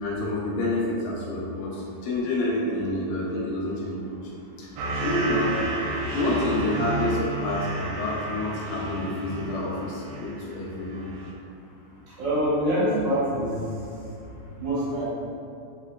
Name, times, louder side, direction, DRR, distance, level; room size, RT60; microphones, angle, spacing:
voice 1, 0.0-4.2 4.6-5.6 6.1-11.1, left 1 dB, 80° left, -4 dB, 2.2 m, -28 dB
sound 1, 4.8-10.5 10.9-11.3, right 2 dB, 85° right, 2.4 m, -31 dB
voice 2, 12.2-13.5 14.6-15.0, equal, 65° right, -10 dB, 2.1 m, -24 dB
5.1 x 4.1 x 2.2 m, 2.6 s
omnidirectional pair, 4.2 m